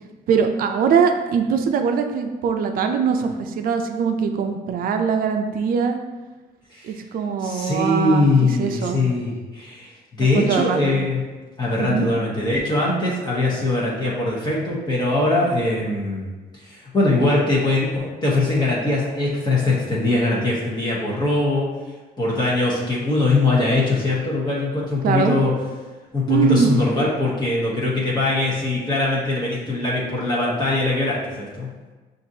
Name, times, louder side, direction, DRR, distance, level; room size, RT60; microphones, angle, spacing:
voice 1, 0.3-6.0 6.8-9.0 10.2-11.0 11.8-12.1 25.0-25.4 26.3-26.7, right 6 dB, 60° right, 5 dB, 0.5 m, -22 dB
voice 2, 7.4-11.2 11.6-16.3 16.5-21.7 22.2-25.5 26.1-31.7, left 2 dB, 25° left, -5 dB, 1.0 m, -21 dB
5.8 x 2.6 x 2.7 m, 1.2 s
cardioid pair, 110°, 17 cm